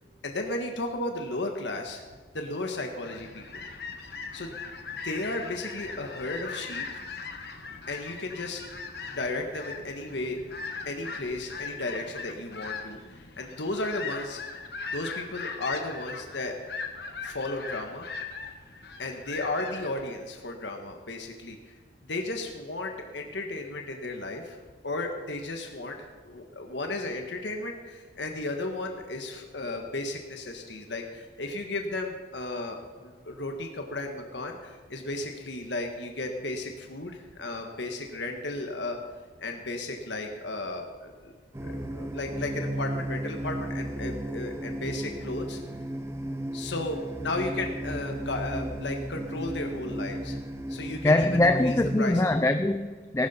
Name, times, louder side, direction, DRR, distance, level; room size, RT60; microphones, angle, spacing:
voice 1, 0.2-2.0 2.3-3.6 4.3-4.5 4.8-7.0 7.9-8.6 9.1-10.4 10.8-14.4 14.9-16.5 17.2-18.1 19.0-21.8 22.0-24.6 24.8-39.0 39.4-41.3 41.6-45.6 46.5-50.4 50.7-51.3 51.6-52.3, left 2 dB, 80° left, 3 dB, 1.4 m, -34 dB
sound 1, 3.0-20.1, left 4 dB, 60° left, 1.4 m, -40 dB
sound 2, 41.5-52.0, right 1 dB, 15° right, 0.7 m, -34 dB
voice 2, 51.0-53.3, left 2 dB, 15° left, 9 dB, 0.4 m, -23 dB
19.0 x 12.5 x 4.3 m, 1.4 s
head